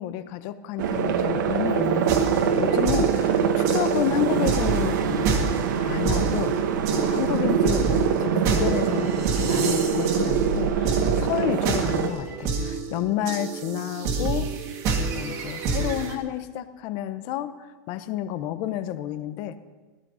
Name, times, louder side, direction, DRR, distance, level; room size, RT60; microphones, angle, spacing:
voice 1, 0.0-6.6 6.9-14.5 15.1-19.6, left 12 dB, 35° left, 12 dB, 0.9 m, -30 dB
sound 1, 0.8-12.1, right 7 dB, 80° right, 1.7 m, -24 dB
sound 2, 2.1-16.2, right 4 dB, 30° right, 2.2 m, -29 dB
17.0 x 14.0 x 5.6 m, 1.3 s
supercardioid pair, 175°, 10 cm